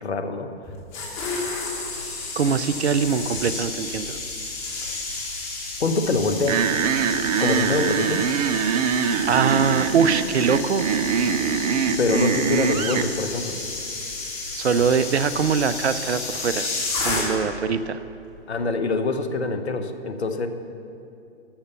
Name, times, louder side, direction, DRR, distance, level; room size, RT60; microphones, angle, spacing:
voice 1, 0.0-0.5 5.8-6.6 7.4-8.2 12.0-13.5 18.5-20.5, left 3 dB, 75° left, 8 dB, 1.1 m, -24 dB
sound 1, 0.7-17.6 17.9-18.2, left 3 dB, 30° left, 2.8 m, -32 dB
voice 2, 2.4-4.2 9.3-10.9 14.5-16.7 17.0-18.0, right 6 dB, 75° right, 14 dB, 0.6 m, -22 dB
sound 2, 6.5-13.1, right 7 dB, 35° right, 0.6 m, -23 dB
13.0 x 6.8 x 6.9 m, 2.6 s
figure-of-eight pair, 120°, 33 cm